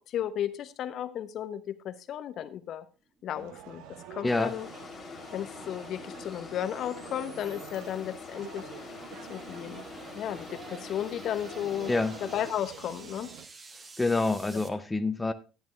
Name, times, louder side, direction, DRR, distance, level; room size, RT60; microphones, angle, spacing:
voice 1, 0.1-2.8 3.2-3.8 4.1-4.7 5.3-8.9 9.3-9.8 10.1-11.9 12.2-13.3, left 10 dB, 50° left, 0.9 m, -34 dB
sound 1, 3.0-14.7, right 3 dB, 30° right, 1.5 m, -53 dB
sound 2, 3.3-13.5, right 8 dB, 60° right, 1.0 m, -47 dB
sound 3, 4.2-12.5, left 5 dB, 35° left, 1.7 m, -45 dB
voice 2, 4.2-4.5 11.9-12.2 14.0-15.3, left 3 dB, 15° left, 0.7 m, -27 dB
11.0 x 10.5 x 3.2 m
figure-of-eight pair, 60°, 0 cm